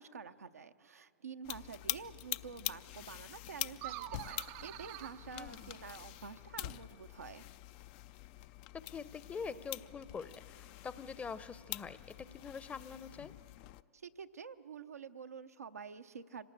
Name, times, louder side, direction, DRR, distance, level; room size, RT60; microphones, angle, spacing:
voice 1, 0.0-7.4 13.9-16.5, right 6 dB, 85° right, 8 dB, 0.8 m, -48 dB
sound 1, 1.4-13.8, left 16 dB, 45° left, 0.5 m, -45 dB
sound 2, 3.7-6.2, right 17 dB, 45° right, 0.5 m, -47 dB
voice 2, 5.3-5.7 8.9-12.0 12.3-13.3, left 5 dB, 15° left, 15 dB, 0.7 m, -44 dB
26.0 x 18.5 x 8.6 m, 2.5 s
hypercardioid pair, 105°, 8 cm